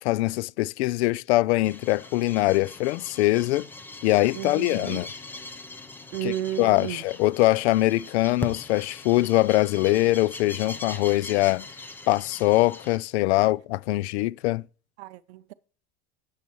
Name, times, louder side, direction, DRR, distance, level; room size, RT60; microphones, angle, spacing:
voice 1, 0.0-3.7 4.0-5.1 6.2-6.3 6.6-11.7 12.1-14.6, left 18 dB, 85° left, 0.5 m, -23 dB
sound 1, 1.6-13.0, left 3 dB, 5° left, 0.5 m, -41 dB
voice 2, 4.3-5.0 6.1-7.0 15.0-15.5, right 13 dB, 75° right, 0.6 m, -33 dB
12.5 x 8.5 x 3.1 m
supercardioid pair, 165°, 33 cm